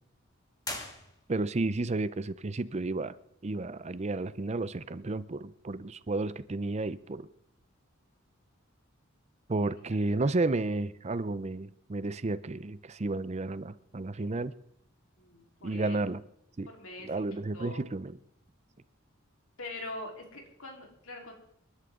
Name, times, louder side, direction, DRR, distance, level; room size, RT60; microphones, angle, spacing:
sound 1, 0.6-1.6, left 2 dB, 20° left, 1.9 m, -41 dB
voice 1, 1.3-3.2 3.4-7.3 9.5-14.5 15.6-16.2 16.6-16.7 17.0-18.2, right 2 dB, 30° right, 16 dB, 0.5 m, -32 dB
voice 2, 15.2-16.0 16.7-17.1 17.5-17.8 19.6-21.3, left 2 dB, 85° left, 0 dB, 3.9 m, -43 dB
28.5 x 11.5 x 3.8 m, 0.75 s
head